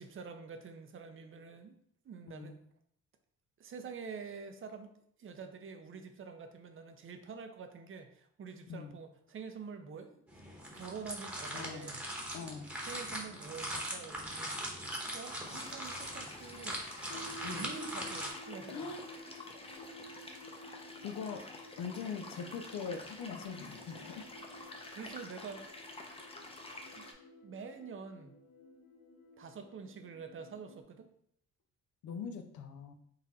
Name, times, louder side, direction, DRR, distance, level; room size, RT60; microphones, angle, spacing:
voice 1, 0.0-1.8 2.0-2.6 3.6-4.9 5.2-10.2 10.7-12.0 12.8-14.5 15.1-16.8 17.4-18.9 24.9-25.7 26.9-27.1 27.4-28.4 29.4-31.1, right 5 dB, 45° right, 6 dB, 0.6 m, -47 dB
sound 1, 10.3-18.3, right 1 dB, 5° right, 1.0 m, -41 dB
voice 2, 11.5-11.9 12.3-12.7 17.4-17.7 18.7-19.0 21.0-21.4 21.8-24.3 26.2-26.5 32.0-32.9, left 6 dB, 70° left, 7 dB, 0.6 m, -42 dB
sound 2, 15.4-27.1, left 2 dB, 20° left, 0.7 m, -49 dB
sound 3, 17.1-30.8, left 1 dB, 55° left, 1.3 m, -53 dB
4.0 x 2.5 x 4.1 m, 0.68 s
cardioid pair, 90°, 30 cm